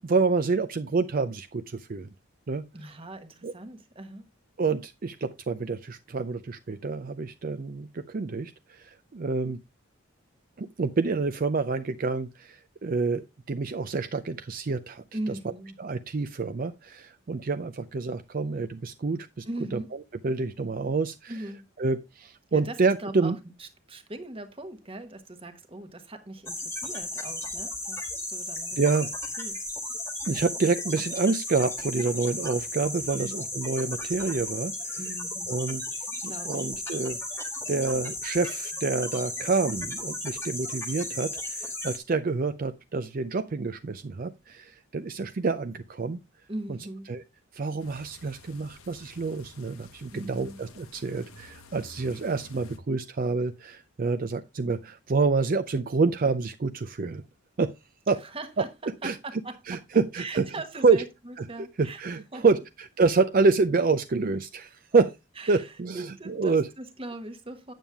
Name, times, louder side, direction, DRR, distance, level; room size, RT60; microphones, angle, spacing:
voice 1, 0.0-2.1 2.5-2.6 3.4-3.5 4.6-9.6 10.6-15.0 15.8-19.4 19.7-19.8 20.2-21.3 21.8-23.4 28.8-29.1 30.3-35.0 35.5-35.8 36.2-37.2 37.7-46.2 46.7-46.8 47.1-47.2 47.5-57.2 57.6-57.7 58.1-58.2 59.0-59.2 59.7-60.4 60.8-61.0 61.6-65.1 65.5-66.7, right 4 dB, 40° right, 0.4 m, -27 dB
voice 2, 2.7-4.2 15.1-15.8 19.4-19.9 21.3-21.6 22.5-23.3 23.6-28.0 28.3-28.9 29.4-29.6 30.9-31.0 33.1-33.4 35.0-35.5 36.2-36.7 46.5-47.1 50.1-50.6 58.2-59.8 60.1-62.4 64.9-65.0 65.4-67.7, right 2 dB, 25° right, 1.2 m, -40 dB
sound 1, 26.5-42.0, left 1 dB, 10° left, 1.5 m, -35 dB
sound 2, 47.8-52.8, left 3 dB, 80° left, 1.2 m, -51 dB
9.0 x 7.2 x 3.4 m
head